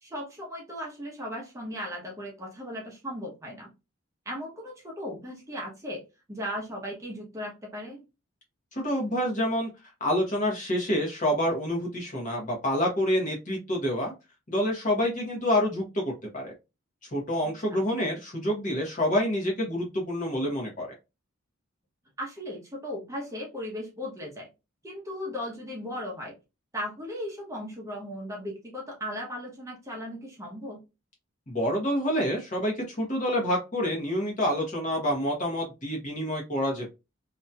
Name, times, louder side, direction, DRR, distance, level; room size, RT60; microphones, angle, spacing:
voice 1, 0.0-3.7 4.3-6.0 6.3-8.0 17.4-17.8 22.2-24.5 24.8-26.3 26.7-30.8, equal, 15° right, -2 dB, 0.8 m, -37 dB
voice 2, 8.7-9.7 10.0-14.1 14.5-16.5 17.1-20.9 31.5-36.9, equal, 40° left, -1 dB, 1.0 m, -27 dB
2.8 x 2.7 x 2.3 m, 0.26 s
head